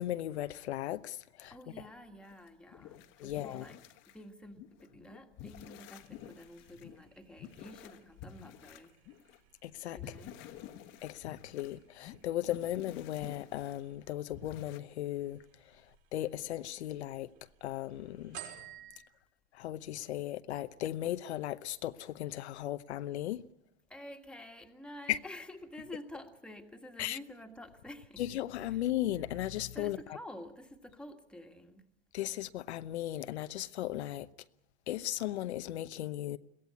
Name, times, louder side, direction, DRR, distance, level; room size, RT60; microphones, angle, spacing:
voice 1, 0.0-1.5 3.2-3.7 9.6-10.1 11.0-17.3 17.6-18.4 19.5-23.4 25.1-25.2 27.0-27.2 28.2-30.0 32.1-34.3 34.9-36.4, left 13 dB, 85° left, 0.9 m, -36 dB
voice 2, 1.5-3.8 4.1-8.9 9.9-10.4 23.9-28.2 29.7-31.9, left 1 dB, 5° left, 1.6 m, -49 dB
sound 1, 2.2-4.2 4.5-9.4 10.0-13.8 14.3-14.8, left 10 dB, 40° left, 1.2 m, -51 dB
sound 2, 6.0-19.0, right 9 dB, 55° right, 5.6 m, -57 dB
22.0 x 16.5 x 9.5 m
supercardioid pair, 145°, 32 cm